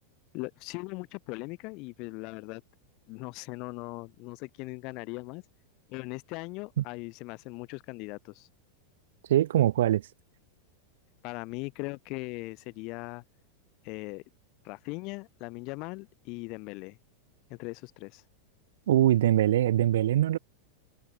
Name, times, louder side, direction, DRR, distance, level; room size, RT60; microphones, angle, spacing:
voice 1, 0.3-2.6 3.1-5.4 5.9-8.5 11.2-13.2 13.8-14.2 14.6-17.0 17.5-18.2, left 26 dB, 40° left, 7.2 m, -39 dB
voice 2, 9.3-10.0 18.9-20.4, right 12 dB, 60° right, 1.6 m, -22 dB
figure-of-eight pair, 90°, 0 cm